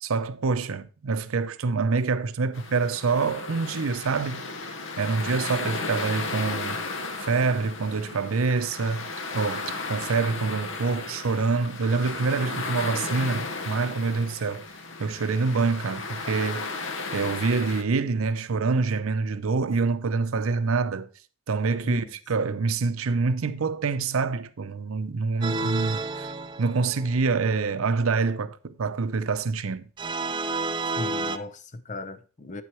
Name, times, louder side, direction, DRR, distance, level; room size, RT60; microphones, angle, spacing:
voice 1, 0.0-4.5 5.0-6.8 7.2-9.1 9.3-14.6 15.0-16.8 17.1-21.1 21.5-26.3 26.6-29.9, right 4 dB, 85° right, 0.6 m, -26 dB
sound 1, 2.5-17.8, left 3 dB, 60° left, 0.9 m, -34 dB
sound 2, 25.4-27.4 30.0-31.4, right 3 dB, 25° right, 0.5 m, -30 dB
voice 2, 31.0-32.6, left 2 dB, 35° left, 0.6 m, -37 dB
9.1 x 7.8 x 3.0 m
head